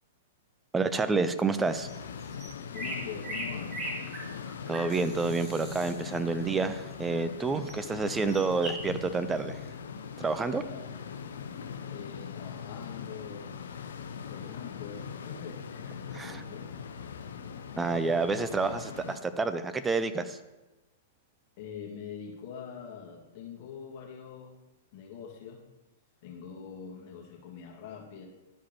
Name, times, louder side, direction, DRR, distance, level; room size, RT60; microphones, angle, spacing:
voice 1, 0.7-1.9 4.7-9.6 10.2-10.6 16.1-16.4 17.8-20.4, right 4 dB, 15° right, 11 dB, 0.5 m, -29 dB
sound 1, 1.6-19.2, left 7 dB, 75° left, 0.6 m, -41 dB
sound 2, 1.9-2.0 2.2-5.9 7.6-7.8 8.1-8.8, right 1 dB, 30° right, 2.3 m, -39 dB
voice 2, 2.7-3.7 10.6-10.9 11.9-13.6 14.3-16.9 21.6-24.6 24.9-25.6 26.2-28.3, left 7 dB, 50° left, -2 dB, 1.8 m, -44 dB
12.0 x 4.9 x 2.9 m, 1.0 s
figure-of-eight pair, 105°, 0 cm